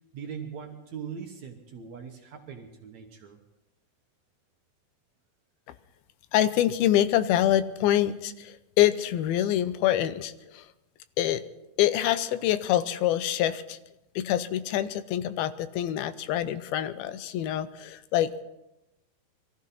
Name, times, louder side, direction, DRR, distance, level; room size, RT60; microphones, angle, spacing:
voice 1, 0.1-3.4, right 7 dB, 60° right, 3 dB, 2.0 m, -40 dB
voice 2, 6.3-10.7 11.2-11.4 11.8-13.8 14.2-18.4, left 12 dB, 85° left, 13 dB, 2.6 m, -25 dB
23.0 x 14.5 x 4.2 m, 0.92 s
omnidirectional pair, 4.4 m